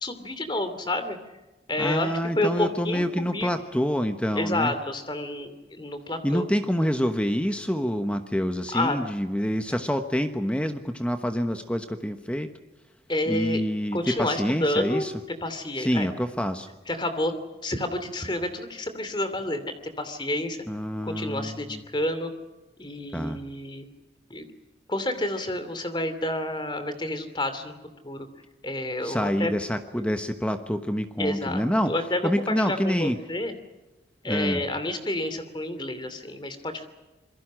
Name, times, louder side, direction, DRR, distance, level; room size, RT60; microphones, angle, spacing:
voice 1, 0.0-1.2 1.7-3.5 4.3-6.4 8.7-9.0 13.1-13.6 13.9-15.1 15.4-16.1 16.9-17.3 17.6-20.6 21.0-22.3 22.8-23.9 24.3-24.4 24.9-27.7 28.0-28.3 28.6-29.5 31.2-33.5 34.2-36.8, left 1 dB, 25° left, 9 dB, 2.7 m, -29 dB
voice 2, 1.8-4.7 6.2-12.5 13.3-15.1 15.8-16.7 20.7-21.8 23.1-23.4 29.0-31.9 32.2-33.2 34.2-34.6, equal, 5° left, 7 dB, 1.1 m, -27 dB
27.0 x 22.5 x 6.3 m, 1.1 s
head